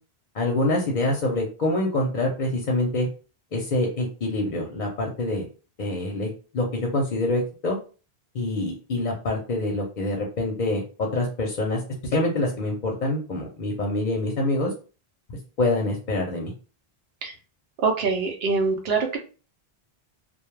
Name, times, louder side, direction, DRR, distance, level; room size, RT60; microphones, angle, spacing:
voice 1, 0.3-3.1 3.5-5.4 5.8-7.8 8.3-14.7 15.3-16.5, left 2 dB, 55° left, 1 dB, 0.6 m, -26 dB
voice 2, 17.8-19.2, right 4 dB, 70° right, 2 dB, 0.8 m, -24 dB
2.2 x 2.1 x 3.1 m, 0.36 s
omnidirectional pair, 1.1 m